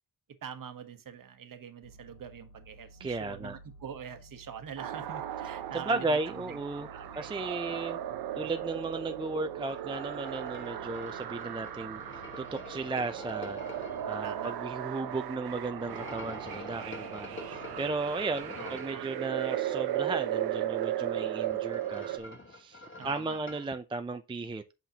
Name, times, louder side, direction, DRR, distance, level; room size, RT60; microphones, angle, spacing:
voice 1, 0.4-7.3 8.1-8.5 13.9-14.6 15.0-15.2 18.6-19.1 23.0-23.4, right 7 dB, 60° right, 1.1 m, -45 dB
sound 1, 1.8-18.4, right 1 dB, 85° left, 1.7 m, -55 dB
voice 2, 3.0-3.6 5.7-6.9 7.2-8.0 8.3-24.7, right 3 dB, 15° right, 0.4 m, -35 dB
sound 2, 4.8-22.2, right 11 dB, 90° right, 0.7 m, -36 dB
sound 3, 9.6-14.2 15.8-19.0 21.1-23.7, left 2 dB, 30° left, 1.7 m, -47 dB
8.0 x 5.9 x 2.8 m
cardioid pair, 95°, 37 cm